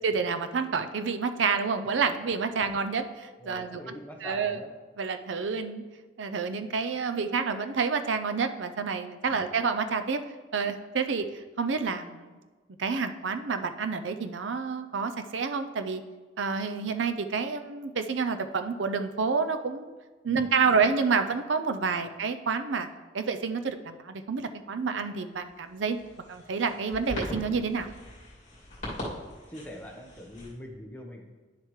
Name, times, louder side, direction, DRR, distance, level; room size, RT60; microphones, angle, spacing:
voice 1, 0.0-3.8 4.2-4.6 5.0-5.8 6.2-10.2 10.5-12.4 12.8-16.0 16.4-19.9 20.2-22.9 23.1-26.0 26.3-27.9, right 5 dB, 85° right, 8 dB, 0.6 m, -29 dB
voice 2, 3.4-4.7 9.3-9.4 20.2-20.8 28.8-29.1 29.5-31.3, left 1 dB, 10° left, 0 dB, 1.0 m, -44 dB
sound 1, 25.3-30.5, left 1 dB, 40° left, 2.4 m, -40 dB
10.5 x 6.6 x 3.2 m, 1.3 s
head